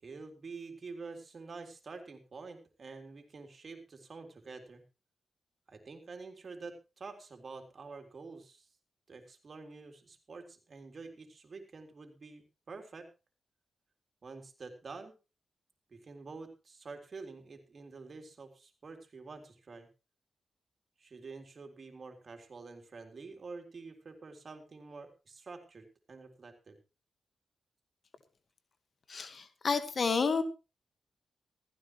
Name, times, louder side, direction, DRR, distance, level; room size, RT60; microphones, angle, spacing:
voice 1, 0.0-4.8 5.7-8.7 9.1-13.1 14.2-15.1 15.9-19.9 21.0-26.8, right 4 dB, 55° right, 5 dB, 3.7 m, -48 dB
voice 2, 29.1-30.4, left 5 dB, 60° left, 11 dB, 1.8 m, -30 dB
15.5 x 15.5 x 3.2 m, 0.30 s
supercardioid pair, 45°, 0 cm